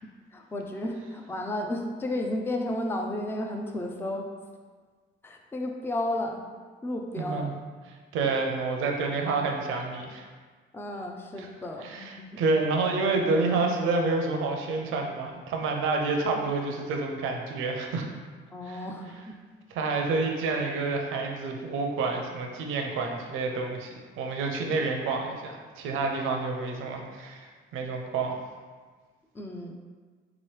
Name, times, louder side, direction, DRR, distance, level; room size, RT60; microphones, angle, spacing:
voice 1, 0.3-4.3 5.2-6.4 6.8-7.6 10.7-12.4 18.5-19.4 29.3-29.7, left 1 dB, 10° left, 2 dB, 0.4 m, -33 dB
voice 2, 7.2-7.5 8.1-10.2 11.4-11.5 11.8-18.1 18.7-18.8 19.7-28.4, right 3 dB, 90° right, 2 dB, 0.6 m, -28 dB
3.7 x 3.0 x 3.1 m, 1.5 s
cardioid pair, 90°, 20 cm